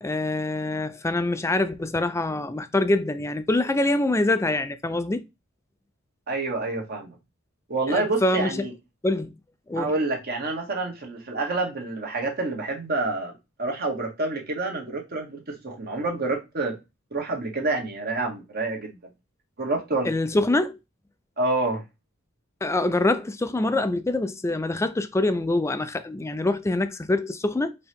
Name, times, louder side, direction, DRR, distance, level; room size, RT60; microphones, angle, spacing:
voice 1, 0.0-5.2 7.9-8.7 9.0-9.3 9.7-9.9 20.1-20.8 22.6-27.8, left 2 dB, 15° left, 0.3 m, -25 dB
voice 2, 6.3-7.2 7.7-8.7 9.7-16.8 17.1-19.0 19.6-20.1 21.4-21.8, right 2 dB, 45° right, 1.3 m, -28 dB
4.5 x 2.8 x 3.5 m
head